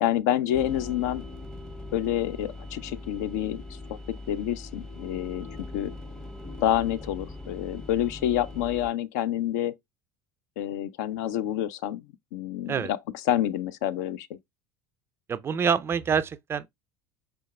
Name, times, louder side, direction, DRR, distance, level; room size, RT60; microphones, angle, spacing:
voice 1, 0.0-1.2 1.9-5.5 5.7-5.9 6.6-9.7 10.6-12.0 12.3-13.0 13.3-14.4, left 12 dB, 55° left, 0.4 m, -28 dB
sound 1, 0.5-8.9, left 2 dB, 5° left, 0.7 m, -41 dB
voice 2, 15.3-16.7, right 7 dB, 25° right, 0.3 m, -26 dB
5.1 x 4.5 x 2.2 m
figure-of-eight pair, 70°, 11 cm